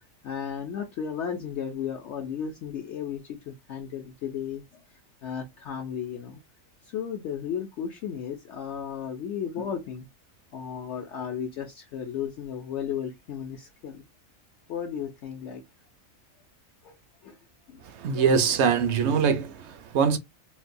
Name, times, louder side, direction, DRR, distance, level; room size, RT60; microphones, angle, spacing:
voice 1, 0.2-4.6 5.2-6.4 6.9-10.1 10.5-14.0 14.7-15.6 16.8-16.9 17.2-17.3 17.7-17.8, left 8 dB, 65° left, 0.8 m, -34 dB
voice 2, 18.0-20.2, right 6 dB, 65° right, 0.8 m, -23 dB
3.9 x 2.2 x 2.5 m
omnidirectional pair, 1.4 m